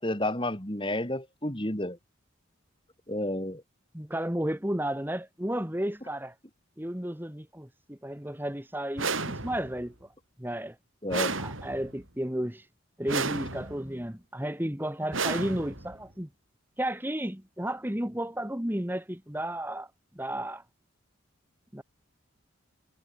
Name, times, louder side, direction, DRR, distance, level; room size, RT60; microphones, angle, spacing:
voice 1, 0.0-2.0 3.1-3.6 11.0-11.3, left 1 dB, 25° left, 3.1 m, -31 dB
voice 2, 3.9-6.3 6.8-10.1 10.4-10.8 11.4-12.7 13.0-16.3 16.8-19.9 20.1-20.6 21.7-21.8, right 1 dB, 10° right, 1.6 m, -33 dB
sound 1, 9.0-9.8 11.1-12.0 13.1-13.9 15.1-16.0, right 4 dB, 75° right, 7.1 m, -32 dB
head